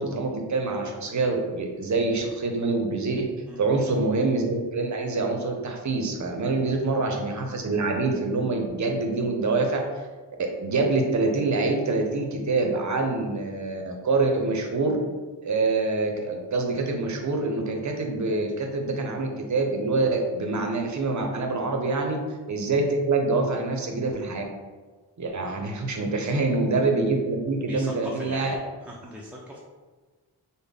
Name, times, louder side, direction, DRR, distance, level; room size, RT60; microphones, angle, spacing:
voice 1, 0.0-3.2 3.6-9.8 10.4-15.0 15.4-22.2 22.5-24.4 25.2-28.5, right 3 dB, 45° right, 3 dB, 0.6 m, -25 dB
voice 2, 6.6-6.9 21.8-22.0 26.0-26.4 27.7-29.6, equal, 5° right, -4 dB, 0.4 m, -41 dB
3.5 x 2.1 x 3.5 m, 1.3 s
wide cardioid pair, 85°, 41 cm